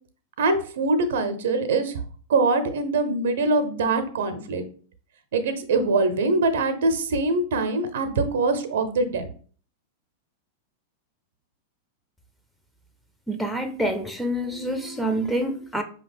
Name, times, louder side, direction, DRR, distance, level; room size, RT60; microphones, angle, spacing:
voice 1, 0.4-2.0 2.3-4.6 5.3-9.3, right 3 dB, 60° right, 0.7 m, -23 dB
voice 2, 13.3-15.8, right 1 dB, ahead, 0.6 m, -27 dB
5.1 x 2.8 x 3.4 m
figure-of-eight pair, 95°, 0 cm